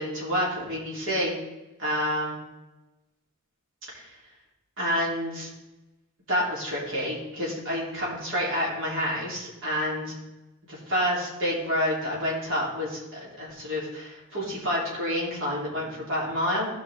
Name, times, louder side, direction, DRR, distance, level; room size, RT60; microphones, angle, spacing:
voice 1, 0.0-1.4 1.8-2.4 3.9-4.1 4.8-5.5 6.3-10.1 10.7-16.7, equal, 60° right, -5 dB, 3.8 m, -28 dB
15.5 x 5.7 x 3.8 m, 1.0 s
head